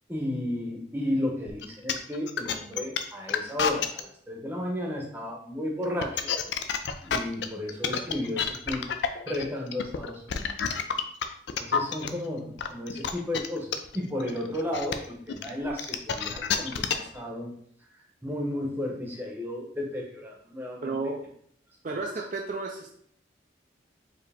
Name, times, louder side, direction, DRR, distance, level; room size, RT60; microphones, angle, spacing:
voice 1, 0.1-6.3 7.0-8.9 9.2-10.6 11.6-17.5 18.2-21.2 21.9-22.0, left 1 dB, 10° right, -2 dB, 0.8 m, -33 dB
sound 1, 1.5-4.0 5.8-12.1 12.6-17.2, left 7 dB, 65° left, 0.4 m, -29 dB
voice 2, 20.8-21.2 21.8-23.0, right 3 dB, 40° right, 1 dB, 0.4 m, -32 dB
4.7 x 2.8 x 3.5 m, 0.65 s
head